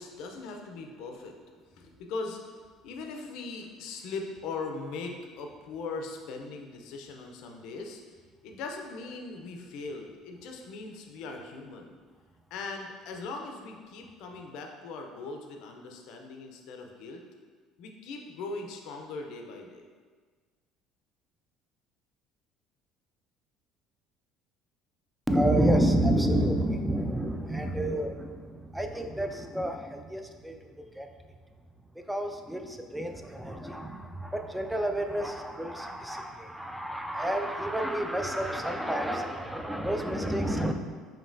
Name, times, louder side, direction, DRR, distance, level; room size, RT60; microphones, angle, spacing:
voice 1, 0.0-1.4 1.8-8.0 8.4-12.0 12.5-17.2 17.8-19.9, left 3 dB, 70° left, 3 dB, 0.5 m, -40 dB
voice 2, 25.3-30.6 31.0-31.1 32.1-40.7, right 1 dB, 5° right, 5 dB, 0.3 m, -29 dB
5.1 x 2.8 x 2.6 m, 1.5 s
cardioid pair, 125°, 0 cm